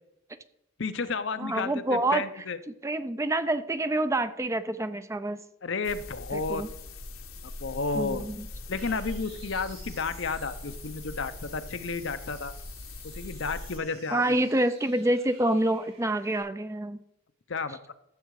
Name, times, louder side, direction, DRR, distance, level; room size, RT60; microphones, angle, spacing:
voice 1, 0.8-2.6 5.6-6.6 7.6-8.3 8.7-12.5 13.2-14.4 17.5-17.9, left 4 dB, 60° left, 11 dB, 0.7 m, -32 dB
voice 2, 1.4-2.2 2.8-5.4 6.3-6.7 7.9-8.5 14.1-17.0, right 1 dB, 15° right, 11 dB, 0.4 m, -27 dB
sound 1, 5.8-13.8, left 2 dB, 75° left, 1.4 m, -42 dB
sound 2, 8.8-16.4, right 6 dB, 80° right, 4.2 m, -54 dB
13.0 x 7.7 x 4.8 m, 0.83 s
head